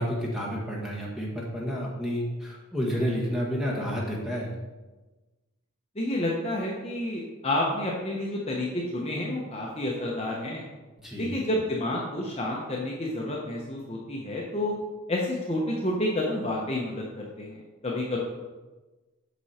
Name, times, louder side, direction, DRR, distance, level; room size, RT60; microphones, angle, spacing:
voice 1, 0.0-4.5 11.0-11.3, equal, ahead, -4 dB, 1.5 m, -30 dB
voice 2, 6.0-10.6 11.2-14.7 15.1-18.2, left 1 dB, 25° left, -2 dB, 0.9 m, -30 dB
8.2 x 6.1 x 4.3 m, 1.2 s
head